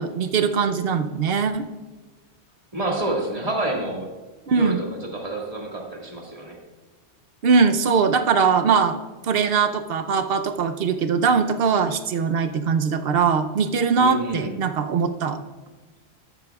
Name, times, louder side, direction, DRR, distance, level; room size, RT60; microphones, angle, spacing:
voice 1, 0.0-1.7 4.5-4.8 7.4-9.0 9.2-15.4, right 5 dB, 60° right, 8 dB, 0.9 m, -21 dB
voice 2, 2.7-4.1 4.5-4.9 5.1-6.6 14.0-14.5, right 1 dB, 30° right, -1 dB, 2.0 m, -28 dB
13.0 x 12.0 x 2.4 m, 1.3 s
omnidirectional pair, 1.2 m